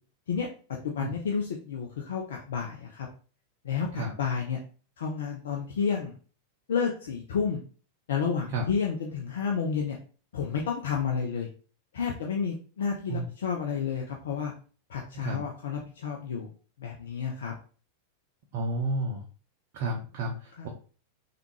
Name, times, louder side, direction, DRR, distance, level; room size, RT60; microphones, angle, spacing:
voice 1, 0.8-3.1 3.6-4.6 5.0-6.1 6.7-7.6 8.1-10.0 10.3-11.5 11.9-14.5 14.9-16.5 16.8-17.5 20.6-20.7, left 6 dB, 60° left, 0 dB, 0.5 m, -30 dB
voice 2, 15.1-15.5 18.5-19.2 19.7-20.7, right 2 dB, 45° right, 0 dB, 0.5 m, -31 dB
3.4 x 2.4 x 3.0 m, 0.39 s
figure-of-eight pair, 90°, 0 cm